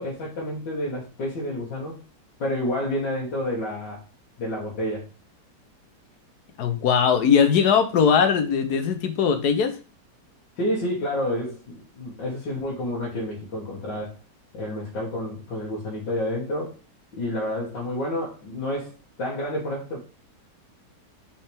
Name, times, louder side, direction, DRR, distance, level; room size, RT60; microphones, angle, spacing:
voice 1, 0.0-2.0 2.4-4.0 4.4-5.1 10.6-14.2 14.5-16.7 17.1-20.0, left 1 dB, 85° left, -6 dB, 2.3 m, -29 dB
voice 2, 6.6-9.7, left 7 dB, 65° left, 8 dB, 1.4 m, -20 dB
5.8 x 5.0 x 3.4 m, 0.34 s
omnidirectional pair, 1.9 m